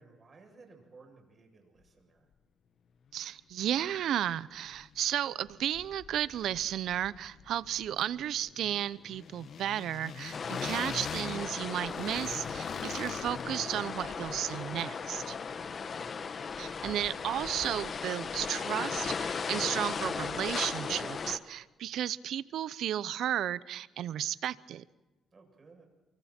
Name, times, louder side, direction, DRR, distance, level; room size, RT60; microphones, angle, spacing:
voice 1, 0.0-2.3 15.5-16.1 25.3-25.9, right 3 dB, 35° right, 7.9 m, -57 dB
voice 2, 3.1-15.4 16.6-24.8, right 11 dB, 75° right, 0.8 m, -33 dB
sound 1, 3.7-3.8 4.0-5.2 5.4-17.6, left 7 dB, 60° left, 1.1 m, -46 dB
sound 2, 10.3-21.4, left 5 dB, 45° left, 1.4 m, -37 dB
29.5 x 24.5 x 4.5 m
cardioid pair, 90°, 0 cm